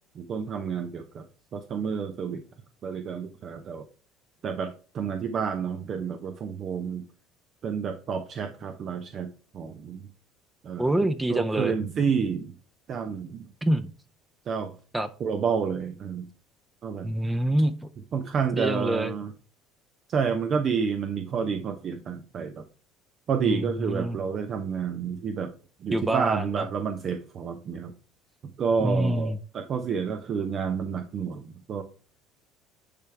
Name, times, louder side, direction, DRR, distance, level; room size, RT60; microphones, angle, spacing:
voice 1, 0.1-1.2 1.5-2.4 2.8-3.9 4.4-7.0 7.6-10.1 10.6-10.9 11.3-12.5 12.9-13.5 14.5-14.7 15.2-16.3 16.8-17.1 18.1-19.3 20.1-22.6 23.3-25.5 25.8-27.9 28.6-31.8, right 6 dB, 45° right, 7 dB, 0.7 m, -29 dB
voice 2, 10.8-11.7 13.6-13.9 14.9-15.1 17.0-17.7 18.5-19.1 23.4-24.2 25.9-26.6 28.8-29.4, right 1 dB, 10° right, 8 dB, 0.7 m, -26 dB
10.0 x 3.4 x 3.4 m, 0.38 s
hypercardioid pair, 60°, 0 cm